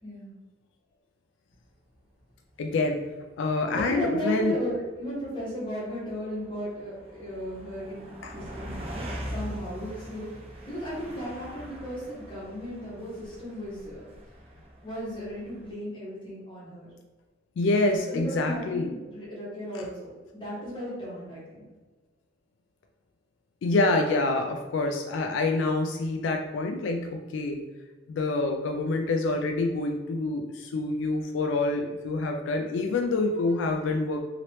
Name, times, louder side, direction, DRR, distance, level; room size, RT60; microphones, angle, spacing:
voice 1, 0.0-0.3 3.7-8.9 9.3-10.3 10.6-14.0 14.8-16.9 17.9-21.7, equal, 25° left, -8 dB, 1.3 m, -35 dB
sound 1, 1.7-1.8 2.5-2.6 2.9-4.0 4.3-15.7, equal, 30° right, 0.6 m, -42 dB
voice 2, 2.6-3.0 3.4-4.6 8.2-8.3 17.6-18.9 19.7-19.8 23.6-27.6 28.1-34.2, left 2 dB, 80° left, 4 dB, 0.3 m, -27 dB
2.9 x 2.9 x 3.0 m, 1.2 s
head